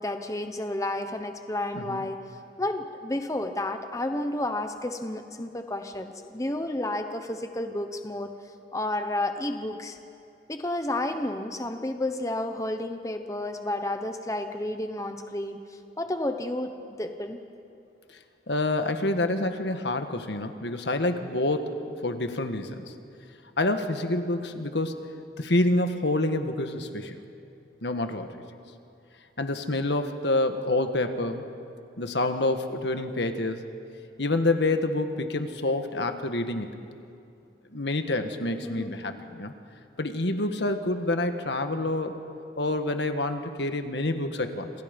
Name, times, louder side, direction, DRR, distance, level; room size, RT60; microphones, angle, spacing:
voice 1, 0.0-2.2 2.6-8.3 8.7-10.0 10.5-17.4 38.6-38.9, left 1 dB, 20° left, 6 dB, 1.0 m, -31 dB
voice 2, 18.5-22.9 23.6-24.9 25.4-27.2 27.8-28.4 29.4-31.4 32.0-33.6 34.2-36.7 37.7-39.5 40.0-42.1 42.6-44.7, left 2 dB, 75° left, 7 dB, 1.6 m, -27 dB
28.0 x 27.5 x 5.3 m, 2.5 s
head